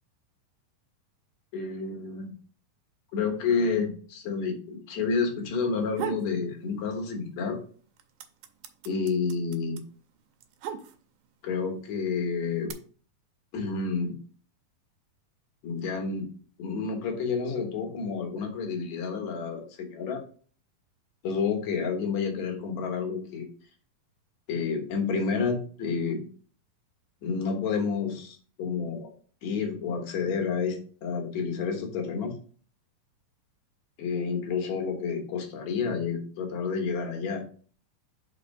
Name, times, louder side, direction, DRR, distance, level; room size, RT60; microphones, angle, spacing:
voice 1, 1.5-2.3 3.1-7.6 8.9-9.8 11.4-12.7 13.5-14.2 15.6-16.3 16.6-20.2 21.2-23.5 24.5-26.2 27.2-29.1 29.4-32.3 34.0-37.4, left 5 dB, 60° left, 2 dB, 2.1 m, -30 dB
sound 1, 5.7-6.3 6.7-7.5 7.7-11.3 12.1-12.7, right 8 dB, 80° right, 2.3 m, -37 dB
5.4 x 4.2 x 5.2 m, 0.43 s
omnidirectional pair, 4.1 m